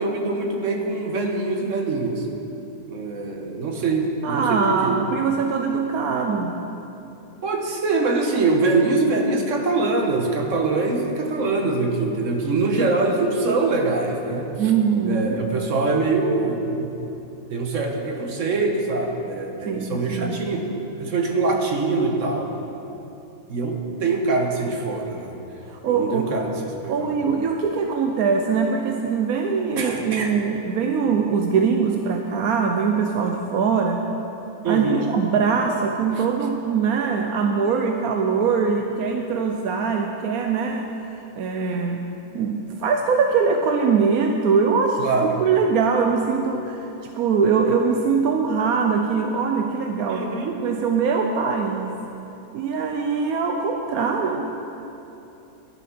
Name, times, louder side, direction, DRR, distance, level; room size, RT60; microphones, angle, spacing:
voice 1, 0.0-2.3 2.9-5.0 7.4-14.5 15.0-16.9 17.5-20.7 21.0-22.5 23.5-25.4 25.9-27.1 29.8-30.3 34.6-35.1 45.0-45.4 50.1-50.6, right 3 dB, 55° right, 2 dB, 1.5 m, -23 dB
voice 2, 4.2-6.5 14.6-15.4 19.6-20.4 25.7-26.3 26.9-34.0 34.7-40.9 41.4-42.0 42.3-46.9 47.1-52.0 52.5-54.4, right 5 dB, 70° right, 3 dB, 1.1 m, -22 dB
12.0 x 10.0 x 6.0 m, 2.9 s
omnidirectional pair, 1.7 m